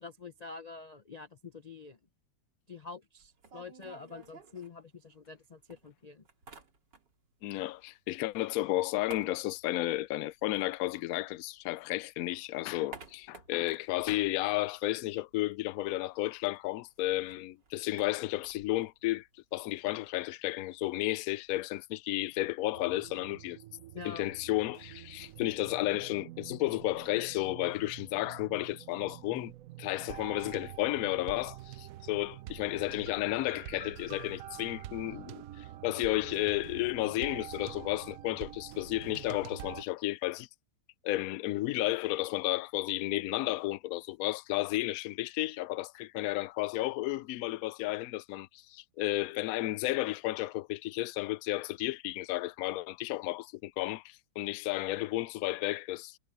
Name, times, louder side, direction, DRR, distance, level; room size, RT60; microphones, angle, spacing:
voice 1, 0.0-2.0 2.7-6.2 23.9-24.3, left 4 dB, 45° left, 0.5 m, -46 dB
sound 1, 3.2-5.4 5.7-7.3 7.6-11.8 12.1-15.4 15.6-15.7 16.0-21.8, right 4 dB, 85° right, 3.6 m, -55 dB
voice 2, 7.4-23.6 24.0-29.5 29.8-40.5 41.0-56.2, left 17 dB, 70° left, 0.9 m, -33 dB
sound 2, 22.7-39.8, right 13 dB, 65° right, 0.9 m, -47 dB
omnidirectional pair, 1.8 m